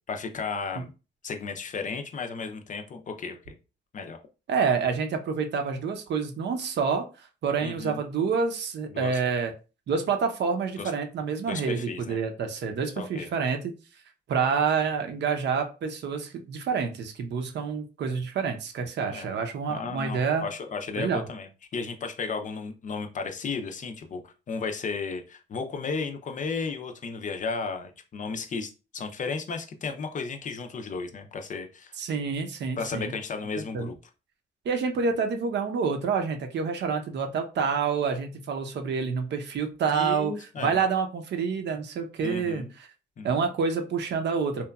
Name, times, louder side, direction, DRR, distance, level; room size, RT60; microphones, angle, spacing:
voice 1, 0.1-0.9 1.2-3.5 3.9-4.2 7.6-8.0 8.9-9.2 10.8-10.9 11.5-12.2 13.0-13.3 19.1-19.3 19.7-31.9 32.8-34.0 39.9-40.8 42.2-42.7 43.2-43.3, left 4 dB, 40° left, 5 dB, 0.4 m, -34 dB
voice 2, 4.5-9.5 9.9-13.7 14.3-20.4 21.0-21.2 32.0-33.1 33.7-33.9 34.6-40.3 40.6-42.9 43.2-44.7, right 5 dB, 60° right, 5 dB, 0.6 m, -28 dB
2.8 x 2.2 x 2.3 m, 0.31 s
cardioid pair, 90°, 20 cm